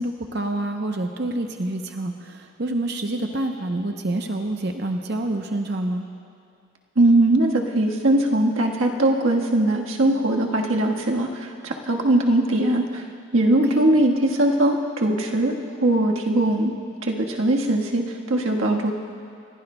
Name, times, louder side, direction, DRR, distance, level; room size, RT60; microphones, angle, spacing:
voice 1, 0.0-6.1 13.7-13.8, right 1 dB, 55° right, 4 dB, 0.7 m, -27 dB
voice 2, 6.9-13.0 13.3-15.5 15.8-16.7 17.0-18.9, right 1 dB, 90° right, 0 dB, 1.4 m, -20 dB
28.5 x 16.0 x 2.2 m, 2.4 s
head